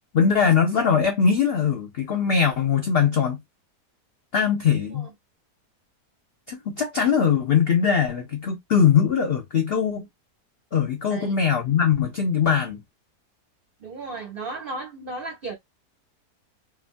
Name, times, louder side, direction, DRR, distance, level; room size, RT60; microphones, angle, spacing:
voice 1, 0.1-3.4 4.3-5.1 6.5-10.0 10.7-12.8, left 7 dB, 80° left, 0.5 m, -21 dB
voice 2, 13.8-15.5, right 3 dB, 70° right, 0.5 m, -35 dB
2.9 x 2.3 x 2.4 m
omnidirectional pair, 1.8 m